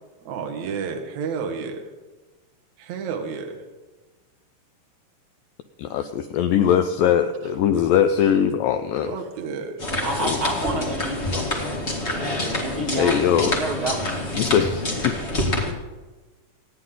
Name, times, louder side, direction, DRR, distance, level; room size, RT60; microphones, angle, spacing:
voice 1, 0.2-1.9 2.8-3.6 9.0-9.8, right 5 dB, 55° right, 3 dB, 2.3 m, -31 dB
voice 2, 5.8-9.1 10.2-10.4 13.0-13.5 14.4-15.2, left 9 dB, 85° left, 8 dB, 2.0 m, -21 dB
sound 1, 9.8-15.7, left 1 dB, 40° left, 0.9 m, -27 dB
voice 3, 10.0-14.1, right 2 dB, 35° right, -2 dB, 2.9 m, -30 dB
26.0 x 9.7 x 3.8 m, 1.2 s
omnidirectional pair, 4.6 m